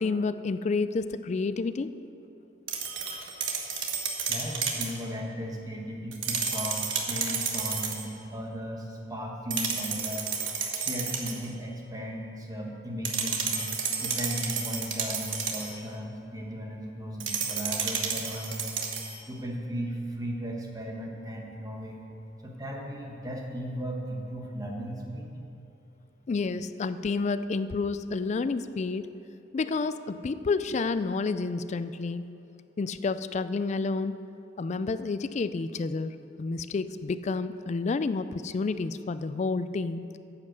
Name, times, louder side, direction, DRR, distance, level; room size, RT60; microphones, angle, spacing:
voice 1, 0.0-1.9 26.3-29.1 29.5-32.3 32.8-34.2 34.6-40.1, left 4 dB, 35° left, 13 dB, 0.3 m, -30 dB
sound 1, 2.7-5.0 6.1-8.1 9.5-11.5 13.0-15.8 17.2-19.2, right 6 dB, 90° right, 1.2 m, -31 dB
voice 2, 4.3-10.3 10.7-13.7 14.0-18.7 19.3-22.0 22.4-25.3, equal, 20° right, 0 dB, 1.4 m, -36 dB
10.5 x 7.5 x 6.5 m, 2.8 s
head